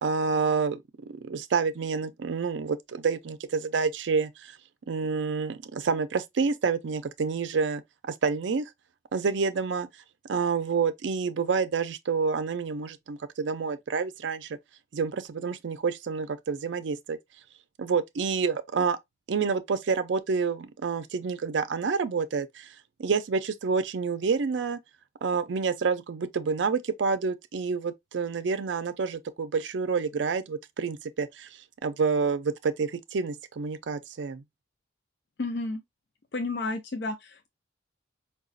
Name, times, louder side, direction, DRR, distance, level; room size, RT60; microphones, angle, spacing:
voice 1, 0.0-4.6 4.9-8.7 9.1-9.9 10.3-14.6 14.9-17.2 17.8-19.0 19.3-22.7 23.0-24.8 25.2-31.5 31.8-34.4, right 5 dB, 70° right, 0.4 m, -28 dB
voice 2, 35.4-35.8 36.3-37.5, left 2 dB, 60° left, 0.4 m, -31 dB
4.8 x 2.2 x 2.5 m
head